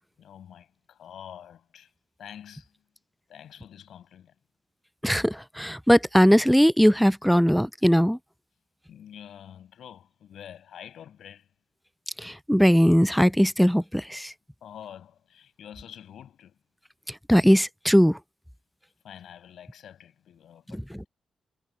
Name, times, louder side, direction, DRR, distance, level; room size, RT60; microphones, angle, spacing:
voice 1, 0.2-1.9 2.2-2.7 3.3-4.3 8.9-11.5 14.6-16.6 19.0-20.8, left 9 dB, 75° left, 6.0 m, -46 dB
voice 2, 5.0-8.2 12.2-14.3 17.3-18.2, equal, ahead, 0.4 m, -20 dB
cardioid pair, 95°, 0 cm